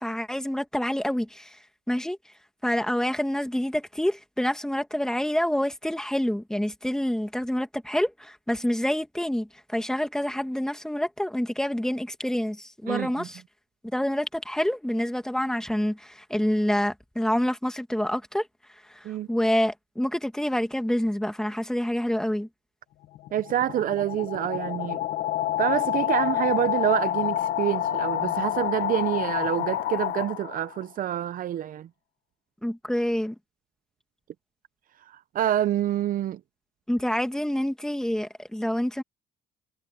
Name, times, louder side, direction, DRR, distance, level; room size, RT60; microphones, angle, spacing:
voice 1, 0.0-1.6 1.9-2.2 2.6-13.4 13.9-18.5 18.9-22.5 32.6-33.3 36.9-39.0, equal, 5° left, 2.4 m, -27 dB
voice 2, 12.9-13.3 19.0-19.3 23.3-25.0 25.6-31.9 35.3-36.4, right 11 dB, 55° right, 0.7 m, -27 dB
sound 1, 23.0-30.8, left 12 dB, 75° left, 1.4 m, -28 dB
cardioid pair, 110°, 17 cm